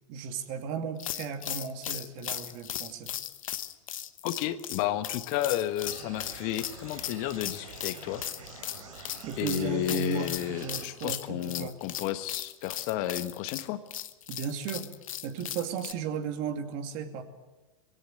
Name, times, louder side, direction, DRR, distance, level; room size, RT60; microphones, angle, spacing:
voice 1, 0.1-3.1 9.2-11.8 14.3-14.9 15.2-17.2, right 6 dB, 50° right, 6 dB, 2.5 m, -35 dB
sound 1, 1.0-15.9, left 11 dB, 75° left, 1.1 m, -37 dB
voice 2, 4.2-8.2 9.4-13.8, left 13 dB, 50° left, 11 dB, 1.3 m, -32 dB
sound 2, 5.8-10.8, right 4 dB, 80° right, 3.4 m, -46 dB
21.5 x 17.0 x 7.8 m, 1.1 s
hypercardioid pair, 100°, 18 cm